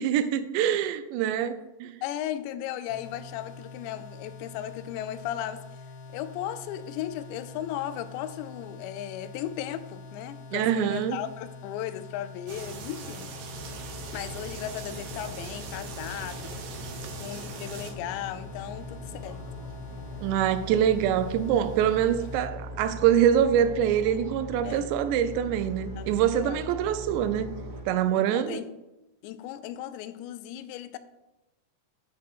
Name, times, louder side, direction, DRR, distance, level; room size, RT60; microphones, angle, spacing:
voice 1, 0.0-2.0 10.5-11.2 20.2-27.6 27.9-28.6, right 9 dB, 90° right, 2.9 m, -25 dB
voice 2, 2.0-5.6 6.1-13.3 14.1-16.7 17.2-19.4 24.6-25.0 26.0-26.6 28.2-28.7 29.2-31.0, left 11 dB, 85° left, 2.8 m, -36 dB
sound 1, 2.9-22.5, left 3 dB, 65° left, 2.3 m, -45 dB
sound 2, 12.5-17.9, right 5 dB, 75° right, 2.7 m, -41 dB
sound 3, 13.5-27.8, left 1 dB, 45° right, 2.1 m, -41 dB
11.0 x 4.6 x 6.0 m
omnidirectional pair, 5.0 m